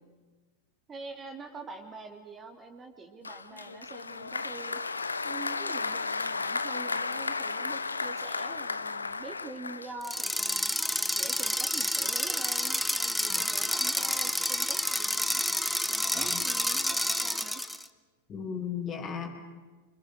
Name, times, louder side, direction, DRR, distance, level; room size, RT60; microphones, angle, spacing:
voice 1, 0.9-4.8 5.2-10.8 11.1-15.4 15.9-17.6, right 3 dB, 20° right, 5 dB, 3.3 m, -45 dB
Applause, 3.2-10.4, left 4 dB, 75° left, 1.1 m, -34 dB
sound 1, 10.0-17.8, left 1 dB, ahead, 1.2 m, -29 dB
voice 2, 18.3-19.4, left 7 dB, 30° left, 4 dB, 4.5 m, -36 dB
27.5 x 26.0 x 6.6 m, 1.3 s
figure-of-eight pair, 90°, 0 cm